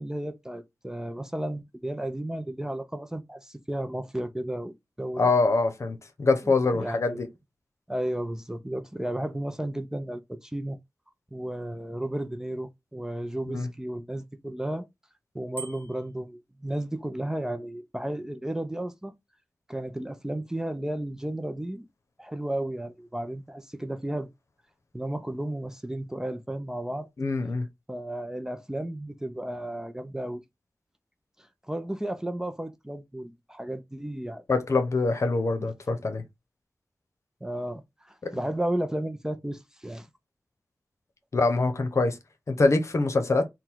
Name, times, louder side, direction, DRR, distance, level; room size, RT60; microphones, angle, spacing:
voice 1, 0.0-5.2 6.4-7.2 7.9-10.8 11.3-14.8 15.3-19.1 19.7-21.9 22.2-24.3 24.9-27.1 27.9-30.4 31.7-34.4 37.4-40.1, right 1 dB, 10° right, 0.5 m, -33 dB
voice 2, 5.2-7.3 13.5-13.7 27.2-27.7 34.5-36.2 38.2-38.3 41.3-42.2 42.5-43.5, left 3 dB, 60° left, 0.9 m, -24 dB
Bicycle bell, 15.5-16.2, right 5 dB, 35° left, 1.3 m, -41 dB
3.7 x 2.2 x 4.5 m
wide cardioid pair, 95°, 6 cm